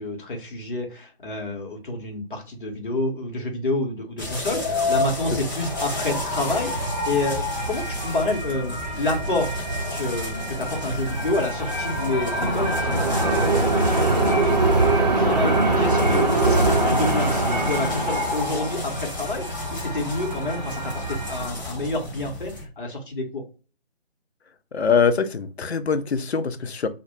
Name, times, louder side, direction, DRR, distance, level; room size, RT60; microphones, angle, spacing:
voice 1, 0.0-9.6 9.9-23.4, left 2 dB, 55° left, 1 dB, 0.8 m, -29 dB
sound 1, 4.2-22.6, left 3 dB, 20° left, 0.6 m, -31 dB
sound 2, 5.6-21.5, right 2 dB, 40° right, 0.6 m, -24 dB
voice 2, 24.7-26.9, left 6 dB, 80° left, 10 dB, 0.5 m, -23 dB
2.1 x 2.0 x 3.0 m, 0.35 s
figure-of-eight pair, 150°, 32 cm